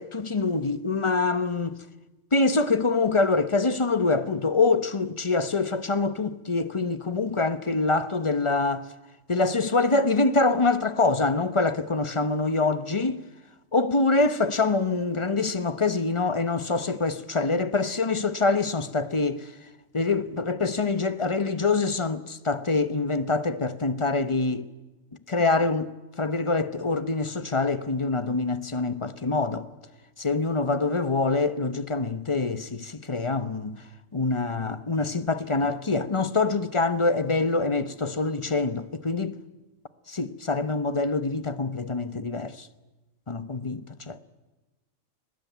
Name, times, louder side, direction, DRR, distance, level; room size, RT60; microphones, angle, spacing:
voice 1, 0.0-1.8 2.3-8.8 9.3-13.2 13.7-19.5 19.9-24.7 25.3-29.7 30.2-33.8 34.1-39.4 40.1-42.7 43.3-44.2, left 3 dB, 25° left, 0.9 m, -25 dB
23.5 x 20.0 x 9.3 m
omnidirectional pair, 1.4 m